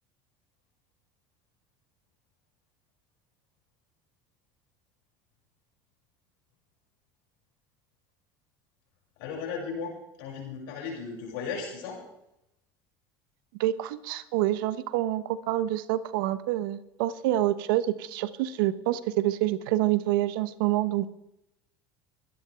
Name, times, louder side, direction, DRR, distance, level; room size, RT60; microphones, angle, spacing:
voice 1, 9.2-12.0, left 5 dB, 80° left, -1 dB, 6.5 m, -36 dB
voice 2, 13.6-21.1, right 14 dB, 80° right, 14 dB, 1.0 m, -27 dB
23.5 x 10.5 x 3.5 m, 0.84 s
supercardioid pair, 85°, 11 cm